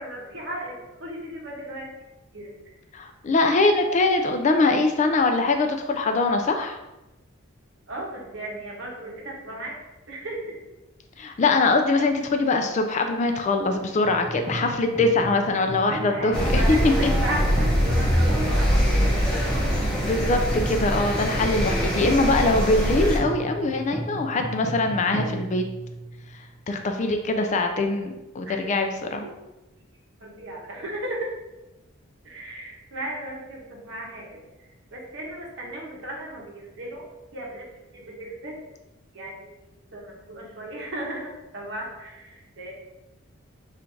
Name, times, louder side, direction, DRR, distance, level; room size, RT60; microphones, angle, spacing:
voice 1, 0.0-1.9 2.3-2.8 7.9-9.8 10.1-10.7 16.1-19.3 28.4-29.3 30.2-31.3 32.2-38.6 39.1-39.5 39.9-42.7, right 1 dB, 60° right, -2 dB, 1.0 m, -35 dB
voice 2, 2.9-6.8 11.2-16.6 17.0-17.1 20.0-25.6 26.7-29.2, left 3 dB, 35° left, 5 dB, 0.3 m, -23 dB
sound 1, 14.0-26.4, right 1 dB, 30° right, 1.0 m, -35 dB
sound 2, 16.3-23.2, equal, 5° left, 0.8 m, -23 dB
3.8 x 2.4 x 4.4 m, 1.0 s
head